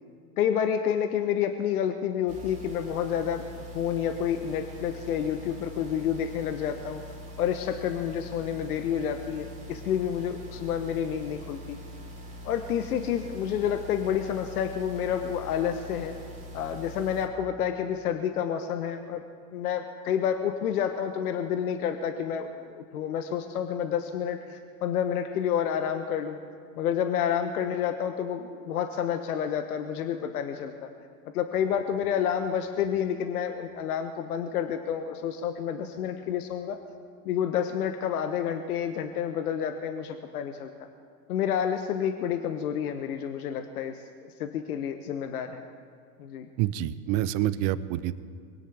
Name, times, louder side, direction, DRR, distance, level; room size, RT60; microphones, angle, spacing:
voice 1, 0.4-3.4 3.7-7.0 7.4-11.8 12.4-16.1 16.5-19.2 19.5-26.4 26.8-30.9 31.3-36.8 37.2-40.7 41.3-45.6 46.2-46.5, left 8 dB, 80° left, 8 dB, 1.0 m, -29 dB
sound 1, 2.3-17.3, equal, 15° right, 3.0 m, -43 dB
voice 2, 46.6-48.2, right 13 dB, 45° right, 16 dB, 0.7 m, -27 dB
22.5 x 17.0 x 3.4 m, 2.2 s
hypercardioid pair, 95°, 44 cm